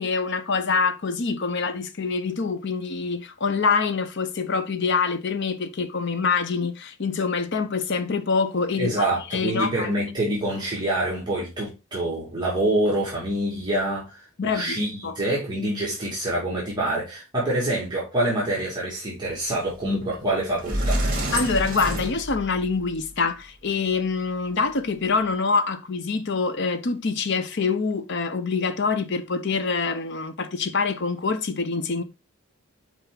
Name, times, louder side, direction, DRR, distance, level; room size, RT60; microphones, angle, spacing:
voice 1, 0.0-9.1 9.3-9.9 14.4-15.2 21.3-32.0, left 4 dB, 55° left, 0.7 m, -25 dB
voice 2, 8.8-21.0, right 1 dB, 20° right, 1.9 m, -26 dB
Sliding door, 20.1-20.2 20.6-22.9, right 1 dB, 40° right, 2.3 m, -27 dB
5.8 x 4.6 x 3.7 m
head